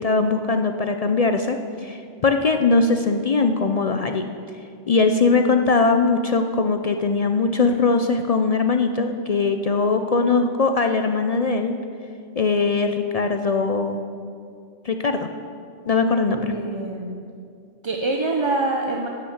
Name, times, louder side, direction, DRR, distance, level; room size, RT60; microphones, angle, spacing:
voice 1, 0.0-4.3 4.9-11.7 12.4-14.0 14.8-15.3 15.9-16.5, left 4 dB, 50° left, 6 dB, 0.4 m, -21 dB
voice 2, 16.4-17.2 17.8-19.1, right 2 dB, 30° right, 2 dB, 0.6 m, -25 dB
10.5 x 6.7 x 7.9 m, 2.4 s
omnidirectional pair, 1.1 m